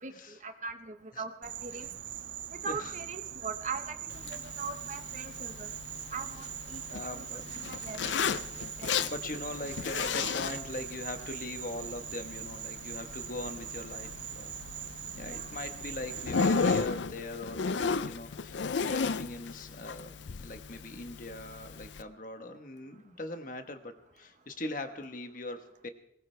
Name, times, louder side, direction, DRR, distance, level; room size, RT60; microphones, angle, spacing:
voice 1, 0.0-1.9 2.6-5.7 6.1-8.0 8.6-8.9 15.2-15.5, right 4 dB, 40° right, 8 dB, 1.1 m, -41 dB
Insect, 1.4-16.9, right 11 dB, 70° right, 0.7 m, -42 dB
voice 2, 2.6-2.9 6.9-7.7 9.0-14.6 15.1-25.9, left 2 dB, 45° left, 7 dB, 1.3 m, -41 dB
Zipper (clothing), 4.1-22.0, left 5 dB, 75° left, 0.5 m, -35 dB
20.5 x 19.0 x 3.4 m, 0.76 s
head